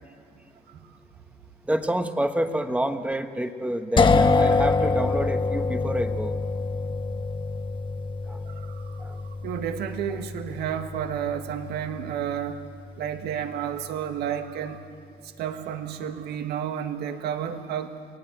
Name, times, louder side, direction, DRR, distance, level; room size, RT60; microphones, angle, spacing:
voice 1, 0.7-1.0 8.4-12.7 13.0-14.9 15.2-18.0, right 9 dB, 75° right, 7 dB, 1.7 m, -31 dB
voice 2, 1.6-6.4 8.3-8.4 9.0-9.2, right 1 dB, 5° right, 7 dB, 1.4 m, -28 dB
sound 1, 4.0-13.7, left 4 dB, 30° left, 1.0 m, -26 dB
29.5 x 19.0 x 8.0 m, 2.2 s
cardioid pair, 110°, 17 cm